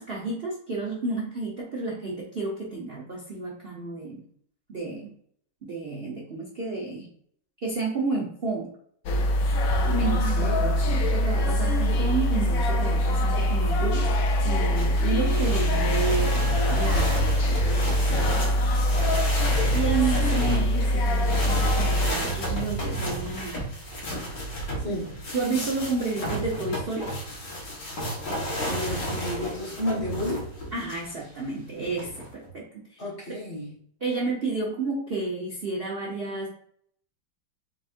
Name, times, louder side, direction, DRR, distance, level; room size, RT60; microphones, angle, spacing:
voice 1, 0.0-4.2 4.7-5.1 5.6-7.1 7.6-8.7 9.8-14.1 14.4-16.4 16.7-17.2 17.8-18.6 19.7-23.7 24.8-25.0 25.3-27.1 30.7-32.6 32.9-33.0 33.3-33.4 34.0-36.5, right 3 dB, 45° right, -4 dB, 0.8 m, -31 dB
sound 1, 9.1-22.1, left 1 dB, 85° left, 0.7 m, -23 dB
voice 2, 10.0-10.9 24.8-25.1 28.7-30.5 33.0-33.7, left 1 dB, 35° left, -5 dB, 1.7 m, -32 dB
sound 2, 14.8-31.1 31.8-32.5, right 1 dB, 60° left, 2.0 m, -32 dB
4.5 x 4.2 x 2.5 m, 0.63 s
omnidirectional pair, 2.2 m